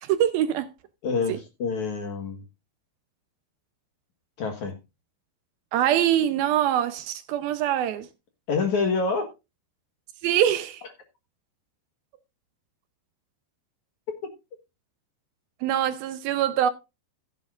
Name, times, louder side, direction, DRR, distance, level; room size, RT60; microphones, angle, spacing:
voice 1, 0.0-0.7 5.7-8.1 10.2-10.8 15.6-16.7, right 11 dB, 75° right, 2.3 m, -24 dB
voice 2, 1.0-2.4 4.4-4.8 8.5-9.3, left 4 dB, 60° left, 2.2 m, -26 dB
15.0 x 10.5 x 2.5 m
omnidirectional pair, 5.2 m